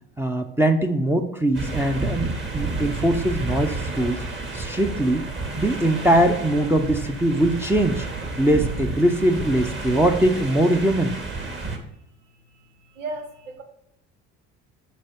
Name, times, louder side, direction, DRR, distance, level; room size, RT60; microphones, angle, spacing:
voice 1, 0.2-4.2 4.5-5.2 5.6-8.1 8.4-11.2, right 1 dB, 5° right, 2 dB, 0.7 m, -21 dB
sound 1, 1.5-11.8, right 3 dB, 30° right, 1.8 m, -30 dB
voice 2, 11.9-13.6, right 2 dB, 90° right, 5 dB, 1.0 m, -38 dB
5.6 x 4.2 x 5.2 m, 0.80 s
hypercardioid pair, 65°, 37 cm